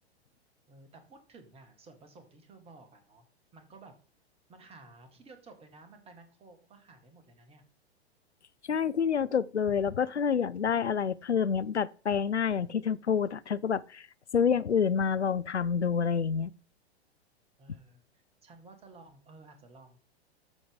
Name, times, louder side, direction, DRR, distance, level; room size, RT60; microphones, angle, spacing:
voice 1, 0.7-3.3 3.5-3.9 4.5-7.6 17.6-20.0, right 3 dB, 20° right, 1.7 m, -54 dB
voice 2, 8.7-14.1 14.3-16.5, left 7 dB, 85° left, 0.5 m, -28 dB
13.0 x 4.5 x 3.7 m
figure-of-eight pair, 100°, 33 cm